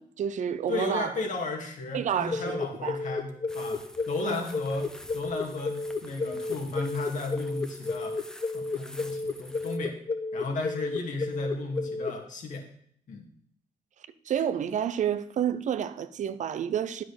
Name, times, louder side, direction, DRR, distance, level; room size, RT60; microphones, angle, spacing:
voice 1, 0.0-1.1 1.9-3.0 4.2-4.4 14.3-17.0, right 9 dB, 60° right, 0.7 m, -30 dB
voice 2, 0.7-8.2 8.5-10.0 10.3-12.6 13.1-13.3, left 3 dB, 70° left, 2.3 m, -34 dB
sound 1, 2.3-12.1, left 3 dB, 35° left, 1.4 m, -32 dB
sound 2, 3.5-9.8, equal, 5° left, 0.9 m, -49 dB
9.4 x 6.0 x 6.6 m
cardioid pair, 75°, 14 cm